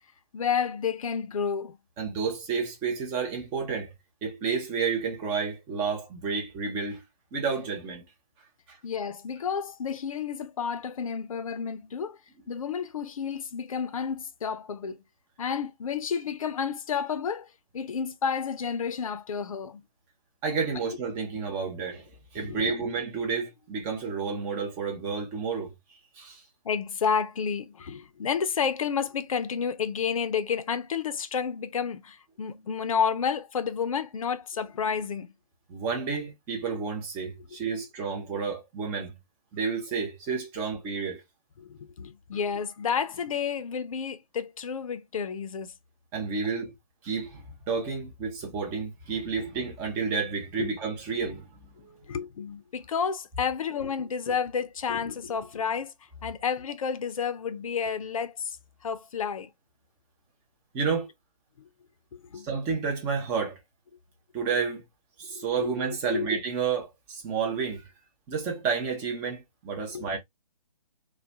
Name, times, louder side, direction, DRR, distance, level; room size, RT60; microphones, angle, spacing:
voice 1, 0.3-1.8 8.8-12.2 12.5-15.0 15.4-17.5 17.7-19.8 22.4-22.9 26.6-35.3 41.6-45.7 50.6-50.8 52.1-55.9 56.2-58.6 58.8-59.5 61.6-61.7 62.1-62.5 65.3-65.7 66.1-66.3 69.9-70.1, left 6 dB, 60° left, 0.5 m, -30 dB
voice 2, 2.0-3.9 4.2-7.0 7.3-8.0 8.7-8.8 20.4-22.1 22.3-25.7 26.1-26.4 35.7-39.1 39.5-41.2 46.1-46.7 47.0-51.5 51.8-52.0 60.7-61.1 62.4-63.6 64.3-64.8 65.2-67.9 68.3-70.2, right 5 dB, 10° right, 0.4 m, -30 dB
2.2 x 2.1 x 2.6 m
figure-of-eight pair, 140°, 20 cm